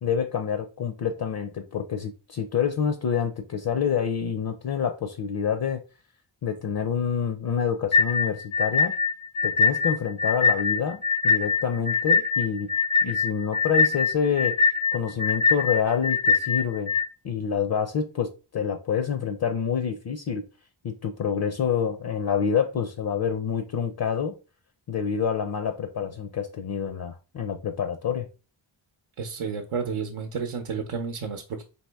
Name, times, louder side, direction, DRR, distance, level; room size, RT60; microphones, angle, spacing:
voice 1, 0.0-5.8 6.4-8.9 9.4-12.7 13.0-14.6 14.9-16.9 17.2-20.4 20.8-24.4 24.9-28.3, left 7 dB, 50° left, 0.5 m, -27 dB
sound 1, 7.9-17.1, left 5 dB, 85° left, 0.8 m, -23 dB
voice 2, 29.2-31.6, right 5 dB, 85° right, 0.7 m, -31 dB
4.2 x 2.9 x 3.4 m
wide cardioid pair, 115°, 49 cm